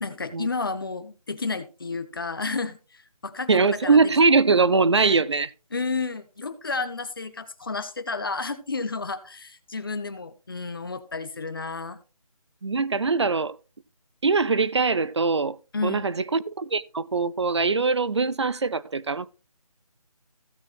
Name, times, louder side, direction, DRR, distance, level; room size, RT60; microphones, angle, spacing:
voice 1, 0.0-4.0 5.7-12.0 15.7-16.1, left 4 dB, 35° left, 1.0 m, -31 dB
voice 2, 3.5-5.5 12.6-13.6 14.2-15.6 15.8-19.3, right 4 dB, 45° right, 0.6 m, -22 dB
16.0 x 6.4 x 3.1 m
figure-of-eight pair, 175°, 19 cm